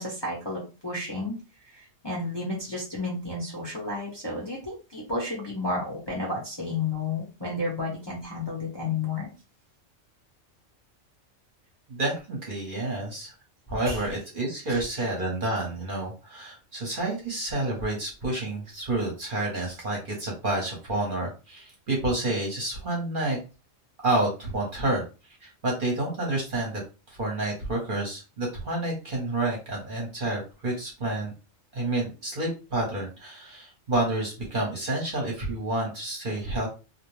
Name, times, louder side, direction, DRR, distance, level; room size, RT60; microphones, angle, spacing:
voice 1, 0.0-1.3 1.6-9.3 13.9-14.0 14.7-14.8, left 3 dB, 25° left, -4 dB, 0.7 m, -32 dB
voice 2, 11.9-13.3 13.7-23.4 24.0-25.0 25.4-26.8 27.1-31.3 31.7-36.7, right 2 dB, 45° right, -1 dB, 0.9 m, -29 dB
2.4 x 2.1 x 3.0 m, 0.31 s
omnidirectional pair, 1.3 m